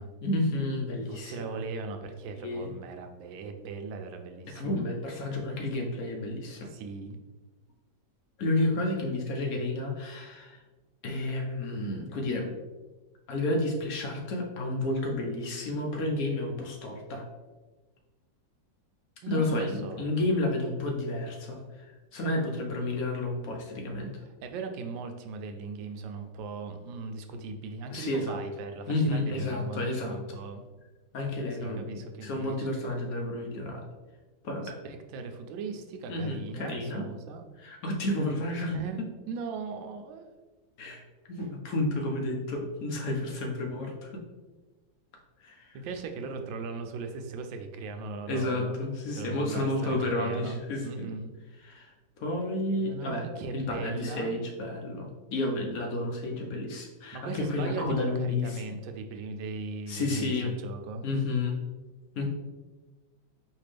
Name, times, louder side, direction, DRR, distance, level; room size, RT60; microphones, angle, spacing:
voice 1, 0.2-1.6 2.4-2.7 4.5-6.7 8.4-10.6 11.0-12.5 13.3-17.2 19.3-24.1 27.9-28.4 28.9-30.2 31.1-31.9 32.2-33.8 34.4-34.8 36.1-37.1 37.6-38.8 40.8-41.0 41.3-44.1 45.4-45.8 48.3-51.1 51.6-51.9 52.2-53.2 53.5-58.8 59.9-60.6 61.0-61.6 62.1-62.3, left 2 dB, 65° left, 0 dB, 0.9 m, -31 dB
voice 2, 1.1-4.8 6.7-7.2 19.2-20.2 24.4-30.6 31.6-32.7 34.8-37.4 38.7-40.2 45.7-48.8 49.2-51.3 52.8-54.3 57.1-61.0, right 4 dB, 85° right, 6 dB, 1.3 m, -38 dB
4.5 x 3.3 x 3.3 m, 1.2 s
omnidirectional pair, 2.0 m